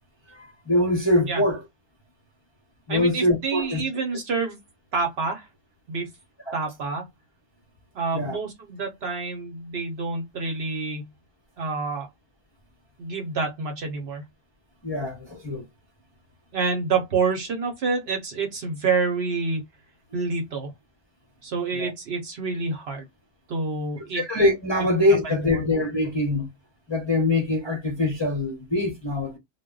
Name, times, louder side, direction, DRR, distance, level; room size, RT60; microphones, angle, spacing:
voice 1, 0.3-1.6 2.9-3.8 6.5-6.6 8.1-8.4 14.8-15.7 21.7-21.9 24.1-26.5 26.9-29.4, left 1 dB, 30° left, 0.5 m, -23 dB
voice 2, 2.9-4.6 4.9-5.5 5.9-6.1 6.5-7.0 7.9-11.1 11.6-12.1 13.0-14.2 16.5-19.6 20.1-20.7 21.4-23.1 23.5-24.2 25.2-25.6, right 4 dB, 60° right, 0.9 m, -28 dB
2.1 x 2.1 x 3.7 m
omnidirectional pair, 1.3 m